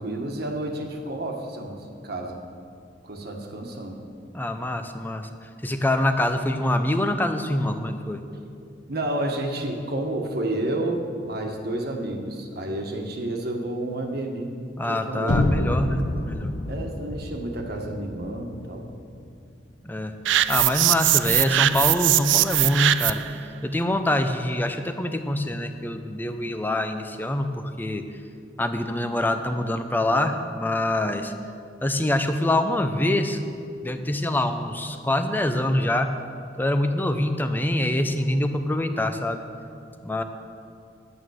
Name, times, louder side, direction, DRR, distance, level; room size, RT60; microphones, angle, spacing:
voice 1, 0.0-2.4 3.0-4.0 8.9-14.6 14.8-15.7 16.7-18.9, right 1 dB, 60° right, 2 dB, 1.4 m, -30 dB
voice 2, 4.3-5.3 5.6-8.2 14.8-16.5 19.8-20.1 20.5-23.2 23.6-28.0 28.6-31.3 31.8-33.4 33.8-36.1 36.6-39.4 40.0-40.2, left 1 dB, 10° left, 7 dB, 0.6 m, -25 dB
sound 1, 15.3-19.2, left 1 dB, 65° left, 0.8 m, -28 dB
sound 2, 20.2-23.3, right 13 dB, 80° right, 0.4 m, -21 dB
11.0 x 9.2 x 6.4 m, 2.4 s
head